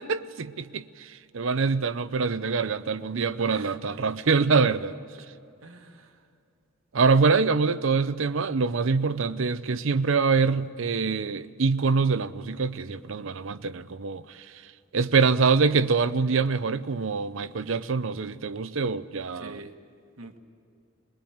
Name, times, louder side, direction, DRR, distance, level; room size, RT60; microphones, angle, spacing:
voice 1, 0.0-4.9 6.9-14.4 14.9-19.6, right 4 dB, 65° right, 0.6 m, -25 dB
voice 2, 3.4-3.8 5.6-6.2 16.3-16.4 19.4-19.7 20.2-20.4, right 3 dB, 80° right, 1.4 m, -45 dB
22.5 x 20.5 x 8.7 m
head